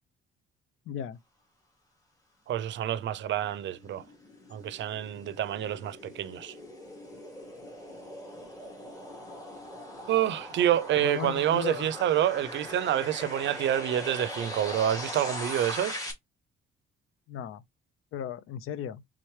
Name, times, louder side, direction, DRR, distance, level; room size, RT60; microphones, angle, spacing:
voice 1, 0.9-1.2 11.0-11.9 17.3-17.6 18.1-19.0, left 9 dB, 80° left, 0.6 m, -35 dB
voice 2, 2.5-4.0 4.5-6.5 10.1-16.0, right 11 dB, 60° right, 0.5 m, -28 dB
sound 1, 2.9-16.1, left 1 dB, 15° left, 2.2 m, -41 dB
4.5 x 3.8 x 3.1 m
cardioid pair, 135°, 21 cm